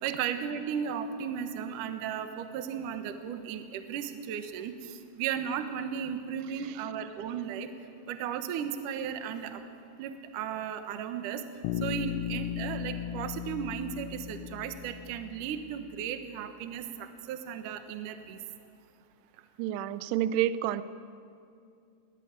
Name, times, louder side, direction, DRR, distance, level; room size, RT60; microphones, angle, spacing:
voice 1, 0.0-7.7 8.1-9.6 10.0-11.4 11.8-18.4, right 8 dB, 75° right, 8 dB, 1.9 m, -35 dB
Bass guitar, 11.6-15.7, left 10 dB, 80° left, 3.6 m, -36 dB
voice 2, 19.6-20.8, right 12 dB, 90° right, 14 dB, 2.3 m, -29 dB
21.0 x 18.5 x 9.6 m, 2.4 s
omnidirectional pair, 5.6 m